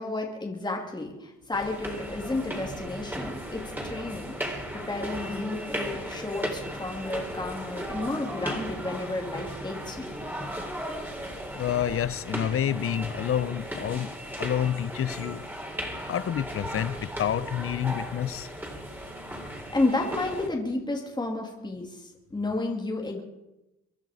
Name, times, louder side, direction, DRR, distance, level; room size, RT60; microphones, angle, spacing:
voice 1, 0.0-4.4 4.7-10.1 19.7-23.2, left 2 dB, 15° left, 2.6 m, -31 dB
sound 1, 1.5-20.5, equal, 5° right, 3.7 m, -36 dB
voice 2, 11.6-14.1 14.4-15.4 16.0-18.5, left 10 dB, 45° left, 0.7 m, -28 dB
24.0 x 10.5 x 5.0 m
cardioid pair, 90°, 30 cm